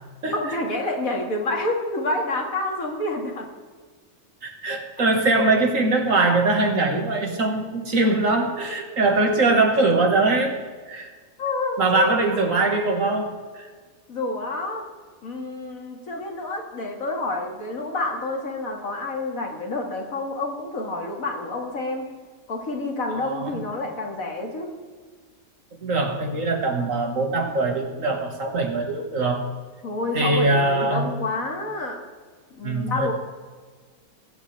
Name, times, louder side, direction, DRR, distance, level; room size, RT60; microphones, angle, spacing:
voice 1, 0.3-3.5 9.2-9.3 11.4-12.4 14.1-14.9 15.2-22.1 22.5-24.7 29.8-32.0 32.5-33.1, left 2 dB, 65° left, 1 dB, 2.3 m, -28 dB
voice 2, 4.4-10.5 10.9-11.1 11.8-13.7 23.1-23.5 25.8-29.4 30.1-31.1 32.6-33.1, right 2 dB, 60° right, 2 dB, 2.1 m, -22 dB
22.0 x 8.7 x 3.4 m, 1.5 s
omnidirectional pair, 1.6 m